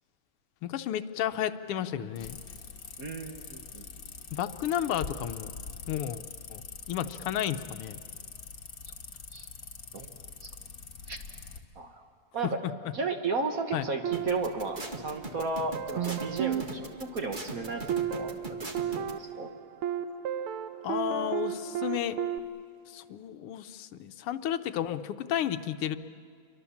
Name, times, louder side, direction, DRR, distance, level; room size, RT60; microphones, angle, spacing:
voice 1, 0.6-2.4 4.3-5.5 5.9-6.2 6.5-6.6 6.9-8.0 12.6-12.7 13.7-13.9 20.8-22.2 22.9-26.0, left 11 dB, 85° left, 10 dB, 1.7 m, -32 dB
sound 1, 2.2-11.6, left 5 dB, 45° left, 1.7 m, -44 dB
voice 2, 3.0-3.9 9.3-9.5 9.9-10.1 10.4-10.5 11.1-11.2 11.8-12.1 12.3-12.6 12.9-17.8 18.1-18.3 18.9-19.5, right 3 dB, 45° right, 4 dB, 1.7 m, -34 dB
sound 2, 14.0-15.3 15.7-22.4, right 9 dB, 80° right, 1.7 m, -34 dB
sound 3, 14.1-19.1, right 2 dB, 25° right, 1.4 m, -39 dB
28.5 x 24.0 x 7.2 m, 2.2 s
omnidirectional pair, 2.4 m